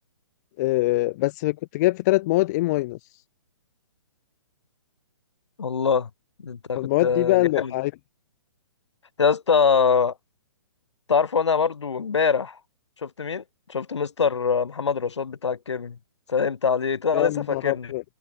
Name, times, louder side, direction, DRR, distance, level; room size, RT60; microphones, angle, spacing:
voice 1, 0.6-3.0 6.8-7.9 17.1-18.0, left 19 dB, 35° left, 1.1 m, -23 dB
voice 2, 5.6-6.1 6.4-7.7 9.2-10.1 11.1-12.6 13.0-13.4 13.7-16.0 16.3-17.9, left 6 dB, 70° left, 5.2 m, -23 dB
figure-of-eight pair, 130°, 15 cm